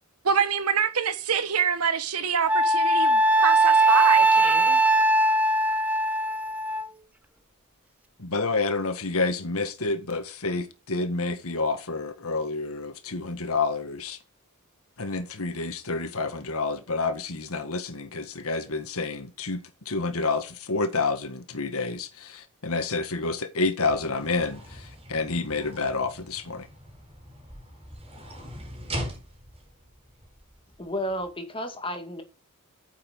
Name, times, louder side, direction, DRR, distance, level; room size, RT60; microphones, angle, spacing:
voice 1, 0.2-4.8, right 6 dB, 80° right, 1.2 m, -26 dB
Wind instrument woodwind instrument, 2.5-6.8, right 2 dB, 5° right, 0.8 m, -20 dB
voice 2, 8.2-14.2 15.0-26.7, left 3 dB, 70° left, 1.7 m, -29 dB
sound 1, 23.8-31.3, equal, 30° right, 4.9 m, -41 dB
voice 3, 30.8-32.2, equal, 25° left, 2.3 m, -32 dB
9.4 x 7.5 x 5.2 m
head